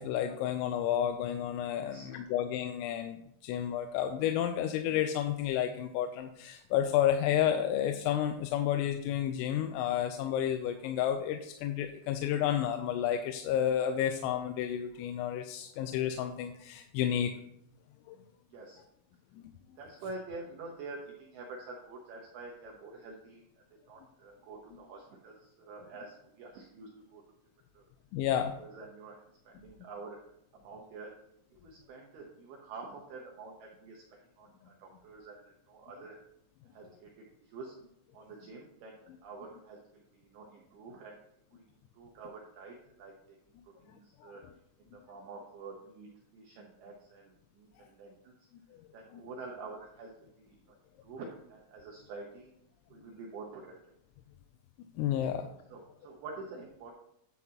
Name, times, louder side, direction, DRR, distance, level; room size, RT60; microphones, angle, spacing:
voice 1, 0.0-17.3 18.1-18.2 28.1-28.5 44.2-44.3 49.1-49.2 55.0-55.5, left 10 dB, 85° left, 7 dB, 3.2 m, -31 dB
voice 2, 18.5-18.8 19.8-23.4 23.9-27.2 27.7-27.8 28.3-30.2 30.5-31.1 31.5-34.0 34.4-36.2 36.7-37.1 37.5-37.8 38.1-41.1 41.5-41.7 42.0-43.1 43.8-44.4 45.1-46.1 46.3-48.3 48.9-50.1 50.4-50.6 51.0-52.5 52.9-53.7 55.7-56.9, right 3 dB, 85° right, -2 dB, 2.2 m, -47 dB
9.8 x 9.0 x 2.8 m, 0.77 s
omnidirectional pair, 6.0 m